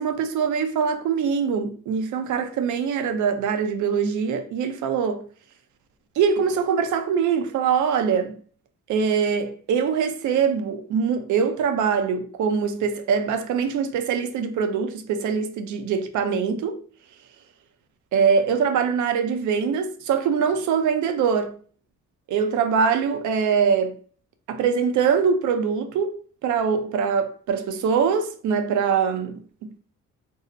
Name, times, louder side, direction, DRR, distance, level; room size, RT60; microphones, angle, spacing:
voice 1, 0.0-5.2 6.2-8.4 8.9-16.8 18.1-21.6 22.3-24.0 24.5-26.2 26.4-29.7, right 6 dB, 75° right, 0.6 m, -23 dB
2.7 x 2.0 x 3.7 m
cardioid pair, 90°, 30 cm